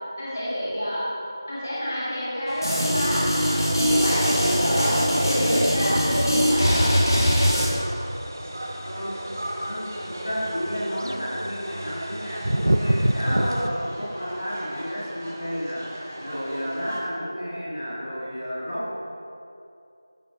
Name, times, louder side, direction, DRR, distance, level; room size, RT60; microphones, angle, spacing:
voice 1, 0.2-1.1 1.5-7.1 13.2-13.6, equal, 30° left, -9 dB, 1.9 m, -27 dB
sound 1, 2.5-13.7, right 1 dB, 60° right, 0.5 m, -31 dB
sound 2, 2.6-7.7, equal, 65° left, 2.1 m, -22 dB
sound 3, 2.8-17.0, right 1 dB, 25° right, 0.9 m, -37 dB
voice 2, 8.8-9.2 9.6-19.0, equal, 45° left, -7 dB, 1.8 m, -32 dB
14.0 x 6.1 x 2.9 m, 2.7 s
figure-of-eight pair, 175°, 2 cm